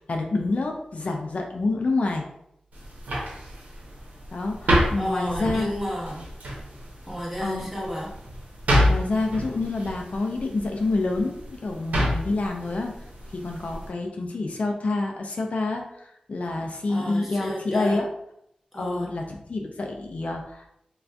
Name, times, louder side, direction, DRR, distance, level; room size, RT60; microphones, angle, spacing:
voice 1, 0.1-2.2 4.3-5.7 7.4-7.9 8.8-12.9 13.3-18.1 18.7-20.7, left 2 dB, 60° left, 2 dB, 0.4 m, -28 dB
sound 1, 2.7-13.9, equal, 85° right, 0.8 m, -29 dB
voice 2, 5.0-6.2 7.1-8.2 16.9-18.0 18.7-19.1, equal, 10° right, -4 dB, 1.0 m, -32 dB
2.5 x 2.3 x 3.3 m, 0.76 s
cardioid pair, 50°, 3 cm